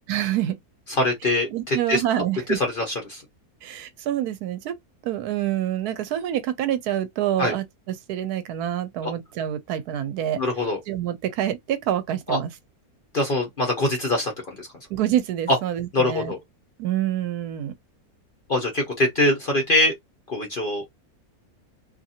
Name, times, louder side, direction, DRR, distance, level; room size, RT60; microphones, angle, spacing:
voice 1, 0.1-0.6 1.5-2.6 3.6-4.8 5.0-10.4 10.9-12.5 14.9-16.3 16.8-17.7, right 11 dB, 80° right, 1.1 m, -27 dB
voice 2, 1.0-2.0 2.5-3.2 7.4-7.5 10.4-10.8 12.3-12.4 13.1-14.7 15.5-15.6 15.9-16.4 18.5-19.9 20.3-20.8, left 1 dB, 45° left, 0.8 m, -23 dB
2.7 x 2.5 x 2.7 m
omnidirectional pair, 1.7 m